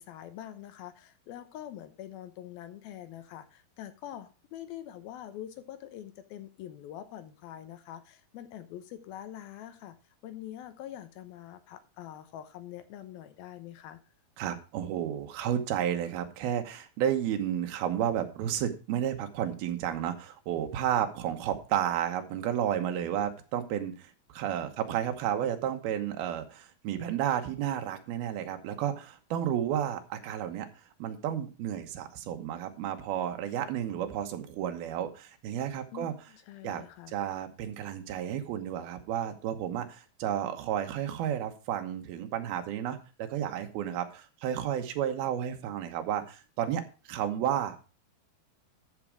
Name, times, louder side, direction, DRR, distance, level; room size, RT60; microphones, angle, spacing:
voice 1, 0.0-10.0 10.2-14.0 35.9-37.1, left 11 dB, 80° left, 11 dB, 2.7 m, -44 dB
voice 2, 14.4-30.7 31.0-36.1 36.6-46.8 47.1-47.8, right 10 dB, 80° right, 6 dB, 3.0 m, -32 dB
13.0 x 6.2 x 4.7 m, 0.34 s
omnidirectional pair, 4.4 m